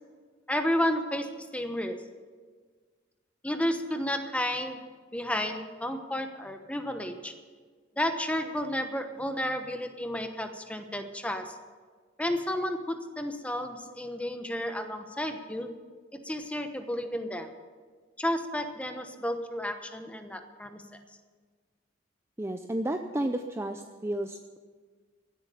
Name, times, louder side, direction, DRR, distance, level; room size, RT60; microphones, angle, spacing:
voice 1, 0.5-2.0 3.4-4.8 5.1-7.3 8.0-11.6 12.2-15.7 16.2-17.5 18.2-20.8, left 1 dB, 5° left, 7 dB, 1.0 m, -32 dB
voice 2, 22.4-24.6, right 1 dB, 15° right, 6 dB, 0.5 m, -32 dB
15.5 x 8.4 x 8.3 m, 1.5 s
head